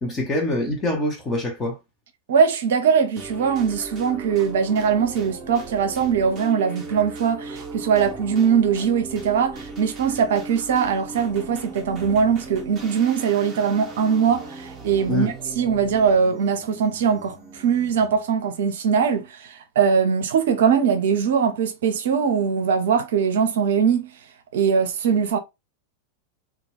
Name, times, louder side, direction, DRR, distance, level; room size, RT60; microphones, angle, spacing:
voice 1, 0.0-1.8 15.1-15.3, left 1 dB, 20° left, 0.7 m, -25 dB
voice 2, 2.3-24.1 24.5-25.4, right 7 dB, 60° right, 0.5 m, -21 dB
sound 1, 3.2-18.3, right 3 dB, 25° right, 0.8 m, -38 dB
2.2 x 2.2 x 3.3 m
figure-of-eight pair, 90°, 0 cm